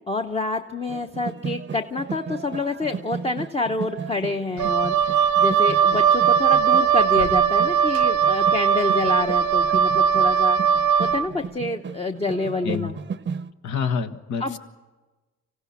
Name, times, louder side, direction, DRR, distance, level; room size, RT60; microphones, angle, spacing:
voice 1, 0.0-10.6 11.0-13.0 14.4-14.6, left 3 dB, 20° left, 4 dB, 0.9 m, -27 dB
sound 1, 0.9-13.5, right 6 dB, 35° right, 0.7 m, -35 dB
Wind instrument woodwind instrument, 4.6-11.3, right 7 dB, 75° right, 0.8 m, -19 dB
voice 2, 13.6-14.6, left 6 dB, 70° left, 8 dB, 1.4 m, -27 dB
26.0 x 16.5 x 7.2 m, 1.2 s
cardioid pair, 90°, 30 cm